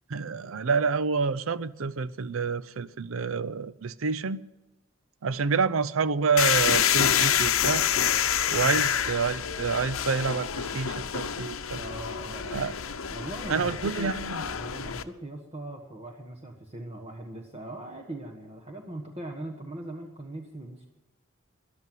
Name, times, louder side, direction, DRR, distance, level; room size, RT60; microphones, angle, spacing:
voice 1, 0.1-4.4 5.2-7.9 8.5-11.8 12.5-12.7 13.5-14.4, right 5 dB, 75° right, 0.6 m, -28 dB
sound 1, 6.4-15.0, left 9 dB, 75° left, 0.8 m, -27 dB
voice 2, 11.7-12.7 13.1-20.9, right 1 dB, 30° right, 1.4 m, -40 dB
14.0 x 11.5 x 9.2 m
head